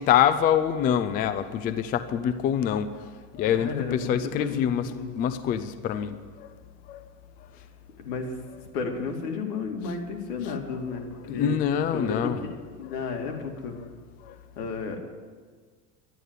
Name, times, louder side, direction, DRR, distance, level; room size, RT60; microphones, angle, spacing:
voice 1, 0.0-3.0 3.3-4.9 5.2-6.5 6.9-7.0 11.3-12.4 14.2-14.4, left 9 dB, 20° left, 12 dB, 0.4 m, -25 dB
voice 2, 3.5-5.1 8.0-8.3 8.7-11.0 11.3-11.6 11.9-13.8 14.6-15.0, left 5 dB, 75° left, 3 dB, 2.7 m, -33 dB
12.0 x 11.5 x 8.2 m, 1.5 s
supercardioid pair, 125°, 49 cm